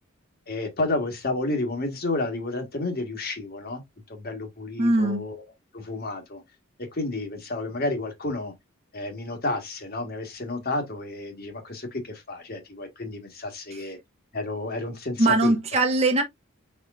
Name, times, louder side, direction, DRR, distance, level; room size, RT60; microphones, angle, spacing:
voice 1, 0.5-3.8 4.1-5.4 5.7-6.4 6.8-8.5 8.9-14.0 14.3-15.5, left 2 dB, 45° left, 1.5 m, -31 dB
voice 2, 4.8-5.3 13.7-13.8 15.2-16.2, right 2 dB, 30° right, 1.0 m, -21 dB
4.8 x 4.4 x 2.5 m
head